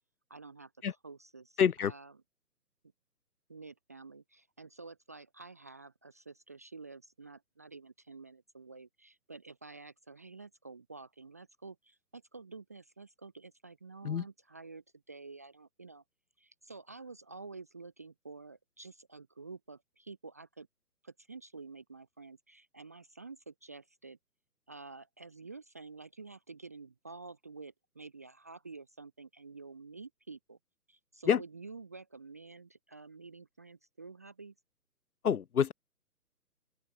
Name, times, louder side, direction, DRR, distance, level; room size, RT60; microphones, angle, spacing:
voice 1, 0.3-2.2 3.5-16.0 16.4-20.7 21.0-24.2 24.7-30.6 30.9-34.5, right 4 dB, 10° right, 0.6 m, -50 dB
voice 2, 1.6-1.9 14.0-14.2 31.3-31.4 35.2-35.7, left 8 dB, 65° left, 1.0 m, -27 dB
open air
figure-of-eight pair, 145°, 48 cm